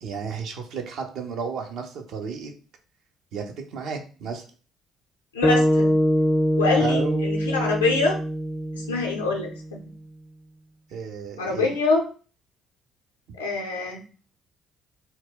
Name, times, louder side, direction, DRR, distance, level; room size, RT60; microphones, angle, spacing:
voice 1, 0.0-2.5 3.3-4.5 6.8-7.3 10.9-11.7, right 5 dB, 60° right, 4 dB, 0.5 m, -32 dB
voice 2, 5.3-6.0 6.6-8.2 8.7-9.9 11.4-12.0 13.4-14.0, left 3 dB, 85° left, 1 dB, 0.5 m, -25 dB
sound 1, 5.4-9.8, equal, 20° left, 0.4 m, -23 dB
2.2 x 2.0 x 3.8 m, 0.37 s
figure-of-eight pair, 50°, 0 cm